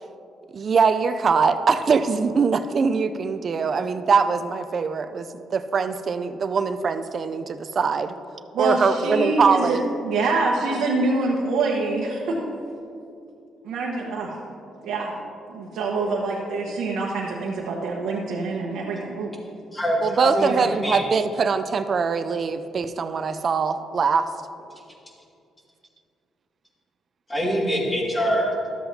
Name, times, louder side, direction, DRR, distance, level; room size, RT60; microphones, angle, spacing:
voice 1, 0.5-8.1 8.6-9.8 20.0-24.3, right 5 dB, 50° right, 10 dB, 0.4 m, -22 dB
voice 2, 8.5-9.8 10.0-12.4 13.6-14.3 14.8-15.1 15.5-19.3 20.4-20.7, right 3 dB, 85° right, -4 dB, 1.0 m, -25 dB
voice 3, 19.7-20.5 20.8-21.0 27.3-28.5, equal, 20° left, -2 dB, 2.1 m, -23 dB
12.5 x 7.7 x 2.8 m, 2.5 s
cardioid pair, 90°, 0 cm